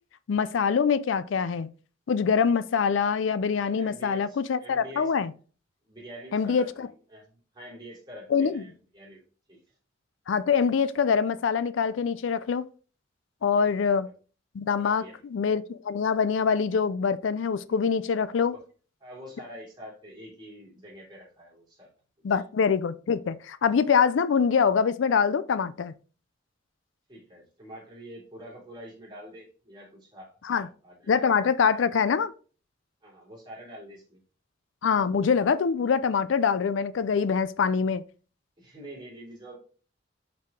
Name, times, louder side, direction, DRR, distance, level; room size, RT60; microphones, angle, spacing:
voice 1, 0.3-1.7 2.1-5.3 6.3-6.9 8.3-8.6 10.3-12.6 13.4-14.1 14.5-18.6 22.2-25.9 30.4-30.7 31.1-32.3 34.8-38.0, left 6 dB, 85° left, 0.4 m, -24 dB
voice 2, 3.7-5.1 5.8-9.2 9.5-9.6 13.6-14.0 14.7-15.2 17.0-17.2 17.7-17.8 18.4-18.6 19.0-21.9 22.3-22.4 27.1-31.2 31.7-31.9 33.0-34.2 38.6-39.6, equal, 25° right, 3.1 m, -46 dB
5.8 x 4.8 x 3.5 m
head